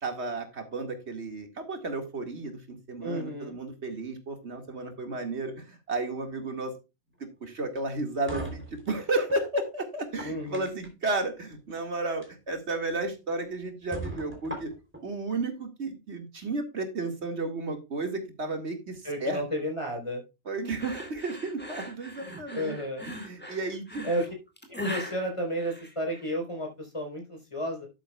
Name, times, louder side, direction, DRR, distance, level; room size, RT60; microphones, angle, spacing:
voice 1, 0.0-6.7 7.2-14.7 15.0-19.4 20.5-22.8 23.0-24.1, right 2 dB, 85° right, 5 dB, 2.4 m, -33 dB
voice 2, 3.0-3.6 10.2-10.6 19.0-20.2 22.5-23.0 24.0-24.3 24.7-27.9, equal, 25° left, 2 dB, 4.3 m, -32 dB
sound 1, 7.7-9.4 10.0-11.1 12.1-12.3 12.7-12.8 13.3-13.4 13.9-15.0, right 1 dB, 10° right, 3.4 m, -40 dB
sound 2, 20.8-26.3, equal, 10° left, 2.2 m, -39 dB
11.5 x 9.0 x 2.3 m, 0.27 s
omnidirectional pair, 1.1 m